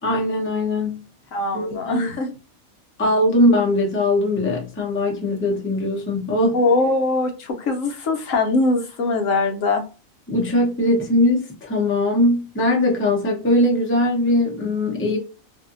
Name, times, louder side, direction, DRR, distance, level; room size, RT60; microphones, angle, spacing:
voice 1, 0.0-1.0 1.5-2.1 3.0-6.6 10.3-15.2, left 1 dB, 15° left, 0.6 m, -20 dB
voice 2, 1.3-2.3 6.5-9.8, left 3 dB, 70° left, 1.0 m, -21 dB
2.7 x 2.5 x 2.5 m
omnidirectional pair, 1.5 m